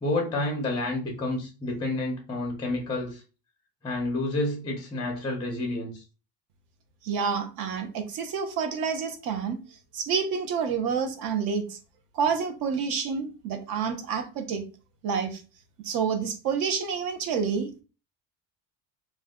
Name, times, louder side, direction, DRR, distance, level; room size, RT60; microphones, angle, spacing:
voice 1, 0.0-3.2 3.8-6.0, left 2 dB, 10° left, 0.4 m, -29 dB
voice 2, 7.0-9.6 9.9-11.8 12.1-14.6 15.0-15.4 15.8-17.8, right 6 dB, 60° right, 0.6 m, -28 dB
2.5 x 2.1 x 3.5 m
cardioid pair, 170°, 40 cm